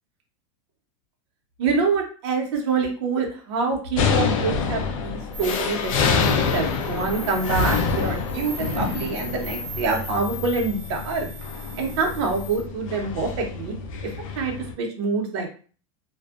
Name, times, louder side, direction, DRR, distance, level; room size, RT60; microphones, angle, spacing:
voice 1, 1.6-11.3 11.8-13.7 14.4-15.5, right 4 dB, 55° right, 1 dB, 0.6 m, -26 dB
sound 1, 4.0-14.7, left 5 dB, 85° left, 0.5 m, -27 dB
sound 2, 5.3-12.6, left 1 dB, 15° left, 1.1 m, -37 dB
2.5 x 2.1 x 2.3 m, 0.40 s
supercardioid pair, 170°, 17 cm